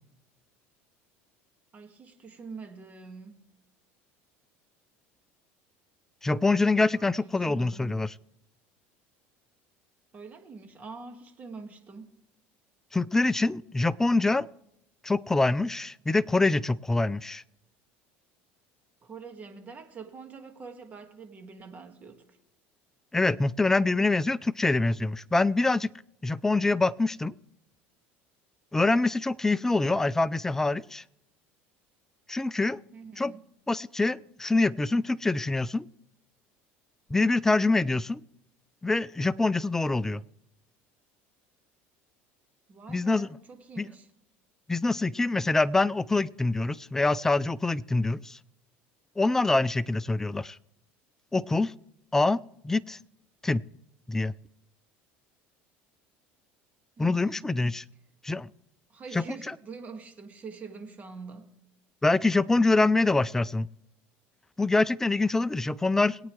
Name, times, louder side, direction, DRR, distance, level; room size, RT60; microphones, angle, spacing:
voice 1, 1.7-3.4 6.9-7.9 10.1-12.2 19.0-22.4 32.9-33.5 42.7-44.1 57.0-57.5 58.9-61.5, right 4 dB, 30° right, 1.8 m, -45 dB
voice 2, 6.2-8.1 12.9-14.5 15.0-17.4 23.1-25.9 26.2-27.3 28.7-31.0 32.3-32.8 33.2-33.3 33.7-35.9 37.1-38.2 38.8-40.2 42.9-43.3 43.8-43.9 44.7-48.4 49.2-50.6 51.3-51.7 52.1-53.0 53.4-53.6 54.1-54.3 57.0-57.8 58.2-58.5 59.1-59.5 62.0-63.7 64.6-66.2, left 3 dB, 10° left, 0.3 m, -25 dB
22.0 x 8.7 x 3.2 m
supercardioid pair, 125°, 6 cm